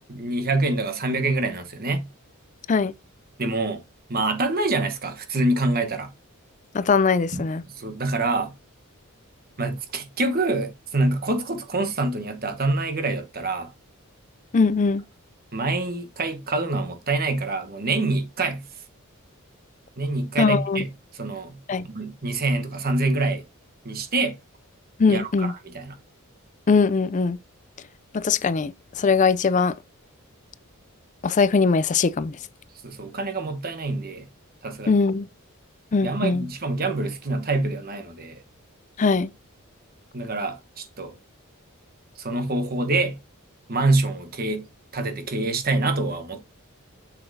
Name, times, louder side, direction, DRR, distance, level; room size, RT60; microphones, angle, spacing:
voice 1, 0.1-2.1 3.4-3.8 4.1-6.1 7.3-7.4 7.7-8.5 9.6-13.7 15.5-18.7 20.0-20.9 21.1-21.6 21.8-23.4 23.8-24.4 25.1-25.9 32.8-34.3 34.6-34.9 36.0-38.4 40.1-41.1 42.2-43.2 43.7-44.6 44.9-46.4, right 2 dB, 45° right, 1.2 m, -26 dB
voice 2, 6.7-7.6 14.5-15.0 20.4-20.8 21.7-21.8 25.0-25.5 26.7-27.4 28.1-29.7 31.2-32.4 34.9-35.3 35.9-36.5 39.0-39.3, left 4 dB, 35° left, 0.4 m, -21 dB
7.6 x 6.8 x 2.7 m
head